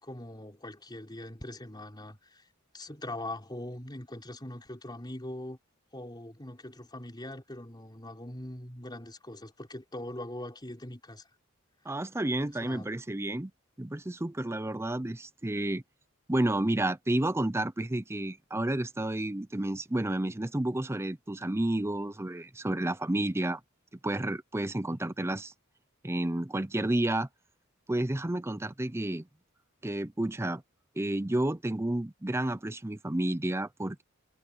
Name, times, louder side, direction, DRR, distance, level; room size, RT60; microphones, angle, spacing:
voice 1, 0.0-2.5 2.7-5.6 5.9-11.3 12.6-12.9, left 1 dB, 20° left, 4.5 m, -42 dB
voice 2, 11.9-13.5 13.8-15.8 16.3-23.6 24.0-25.5 26.0-27.3 27.9-29.3 29.8-30.6 31.0-34.0, right 1 dB, 10° right, 0.6 m, -31 dB
head